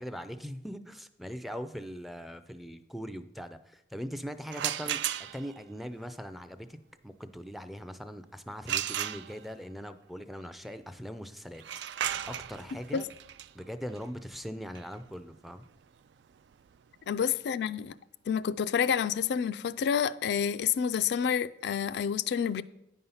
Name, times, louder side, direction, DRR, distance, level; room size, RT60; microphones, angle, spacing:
voice 1, 0.0-5.0 5.3-6.8 7.0-11.6 12.3-13.1 13.5-15.7, equal, ahead, 0.4 m, -41 dB
sound 1, 4.5-5.6 8.7-9.7 11.5-17.2, right 11 dB, 75° right, 0.3 m, -36 dB
voice 2, 17.1-17.9 18.3-22.6, left 7 dB, 70° left, 0.3 m, -29 dB
9.4 x 5.5 x 5.6 m
head